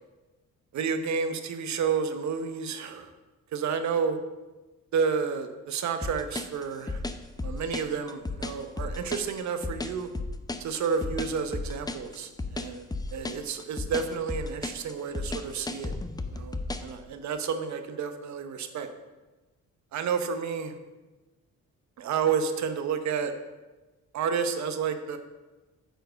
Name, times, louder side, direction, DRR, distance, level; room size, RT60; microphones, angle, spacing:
voice 1, 0.7-3.1 3.5-4.2 4.9-7.0 7.4-10.1 10.6-12.9 13.1-15.9 16.3-18.9 19.9-20.7 22.0-23.3 24.1-25.2, right 6 dB, 65° right, 8 dB, 1.0 m, -30 dB
sound 1, 6.0-16.9, left 2 dB, 15° left, 0.6 m, -34 dB
9.1 x 4.6 x 6.5 m, 1.2 s
cardioid pair, 90°, 30 cm